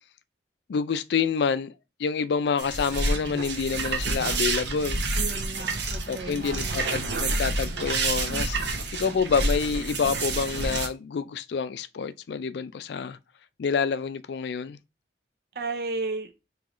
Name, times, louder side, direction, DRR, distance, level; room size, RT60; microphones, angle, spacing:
voice 1, 0.7-1.7 2.0-5.0 6.1-8.6 8.9-13.2 13.6-14.8, left 5 dB, 70° left, 0.4 m, -28 dB
sound 1, 2.6-10.9, right 3 dB, 75° right, 0.8 m, -28 dB
voice 2, 5.2-6.9 15.6-16.3, right 3 dB, 55° right, 0.5 m, -34 dB
3.7 x 3.0 x 3.0 m
head